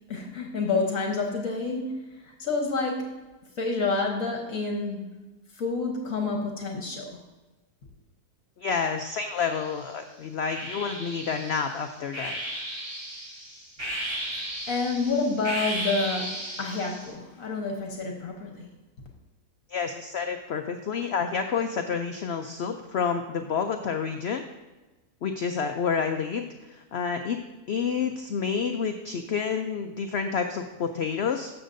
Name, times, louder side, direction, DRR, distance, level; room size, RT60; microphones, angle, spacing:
voice 1, 0.1-2.0 2.4-3.2 3.6-5.0 5.6-7.2 14.7-18.7, left 3 dB, 60° left, 1 dB, 1.5 m, -28 dB
voice 2, 8.6-12.4 19.7-24.4 25.2-27.4 27.7-31.5, left 6 dB, 75° left, 6 dB, 0.6 m, -29 dB
sound 1, 9.1-9.8 10.5-17.1, right 1 dB, 45° right, 3.8 m, -35 dB
13.0 x 6.9 x 2.6 m, 1.2 s
omnidirectional pair, 1.7 m